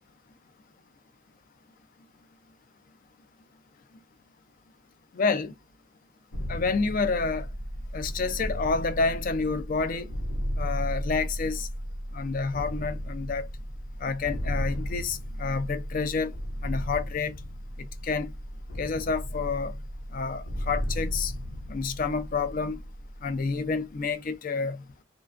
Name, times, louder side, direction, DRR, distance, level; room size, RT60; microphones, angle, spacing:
voice 1, 5.1-5.5 6.5-7.5 7.9-10.1 10.6-11.7 12.1-13.5 14.0-16.3 16.6-17.4 18.0-18.3 18.8-19.7 20.1-21.3 21.7-22.8 23.2-24.8, left 4 dB, 40° left, 0.4 m, -29 dB
sound 1, 6.3-24.0, equal, 80° left, 0.7 m, -35 dB
2.3 x 2.2 x 2.4 m
head